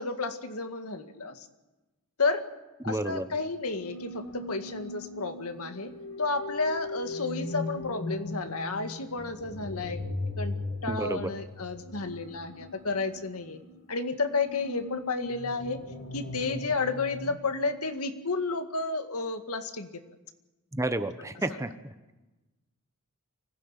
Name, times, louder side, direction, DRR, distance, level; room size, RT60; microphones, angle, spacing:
voice 1, 0.0-1.5 2.2-2.4 2.8-5.9 6.2-10.0 10.4-10.5 10.8-13.6 13.9-15.8 16.1-19.9, left 3 dB, 80° left, 7 dB, 1.9 m, -31 dB
voice 2, 2.9-3.3 10.9-11.3 20.7-21.9, right 1 dB, 15° right, 10 dB, 1.0 m, -31 dB
sound 1, 3.6-17.4, left 2 dB, 60° left, 2.8 m, -39 dB
24.5 x 16.5 x 9.0 m, 1.1 s
head